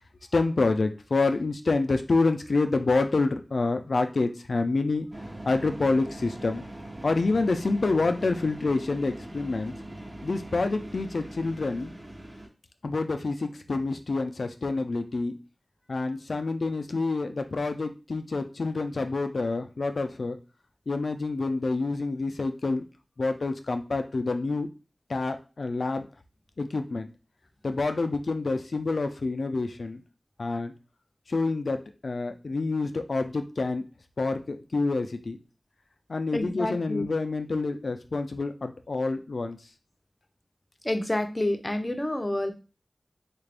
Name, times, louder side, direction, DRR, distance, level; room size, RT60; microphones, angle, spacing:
voice 1, 0.3-5.1 5.5-6.6 7.0-9.7 10.2-12.0 12.8-15.3 15.9-20.4 20.9-22.8 23.2-24.7 25.1-26.1 26.6-27.1 27.6-30.0 30.4-30.7 31.3-33.8 34.2-35.4 36.1-39.6, left 3 dB, 75° left, 7 dB, 0.4 m, -27 dB
sound 1, 5.1-12.5, right 1 dB, 20° right, 0.8 m, -41 dB
voice 2, 36.3-37.1 40.8-42.5, left 1 dB, 25° left, 6 dB, 0.6 m, -28 dB
3.7 x 2.5 x 3.4 m, 0.32 s
wide cardioid pair, 70°, 0 cm